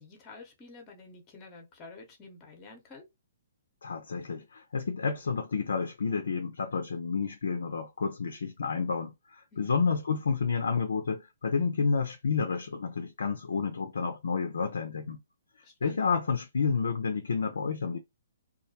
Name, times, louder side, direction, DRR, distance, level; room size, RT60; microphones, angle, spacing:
voice 1, 0.0-3.1 9.5-9.8 15.6-16.0, left 3 dB, 25° left, 0.8 m, -49 dB
voice 2, 3.8-15.2 15.8-18.0, left 5 dB, 70° left, 0.4 m, -30 dB
2.3 x 2.1 x 2.7 m
figure-of-eight pair, 125°, 0 cm